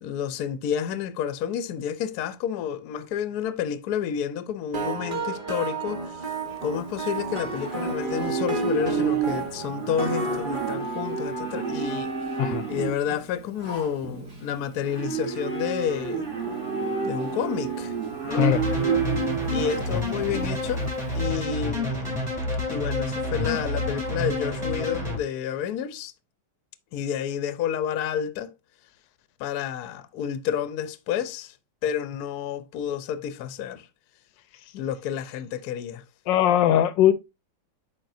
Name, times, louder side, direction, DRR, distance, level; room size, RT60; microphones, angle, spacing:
voice 1, 0.0-6.0 6.6-12.1 12.7-16.2 17.0-17.9 18.2-18.5 19.5-20.9 21.1-22.2 22.7-26.1 26.9-28.5 29.4-31.5 31.8-33.9 34.7-36.0, left 8 dB, 65° left, 1.1 m, -30 dB
sound 1, 4.7-10.7, right 3 dB, 35° right, 0.9 m, -32 dB
Livestock farm animals working animals, 6.5-21.2, right 6 dB, 60° right, 3.7 m, -30 dB
sound 2, 18.3-25.2, left 1 dB, 15° right, 2.8 m, -29 dB
voice 2, 36.3-37.1, left 11 dB, 85° left, 1.3 m, -20 dB
8.9 x 5.2 x 2.6 m
omnidirectional pair, 1.9 m